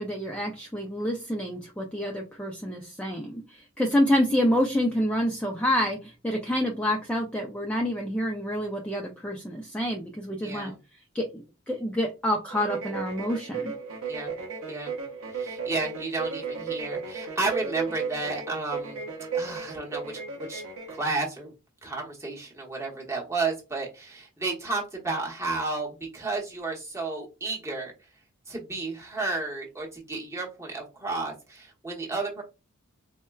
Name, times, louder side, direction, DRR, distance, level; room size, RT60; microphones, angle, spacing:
voice 1, 0.0-10.7 11.1-13.7, equal, 5° left, 0 dB, 0.4 m, -28 dB
voice 2, 10.4-10.8 14.1-14.3 14.7-15.0 15.3-19.0 19.3-20.6 20.9-21.5 21.8-27.9 28.5-32.4, right 3 dB, 15° right, -2 dB, 1.0 m, -32 dB
sound 1, 12.5-21.1, right 5 dB, 75° right, 0.7 m, -35 dB
4.3 x 2.2 x 2.2 m, 0.28 s
head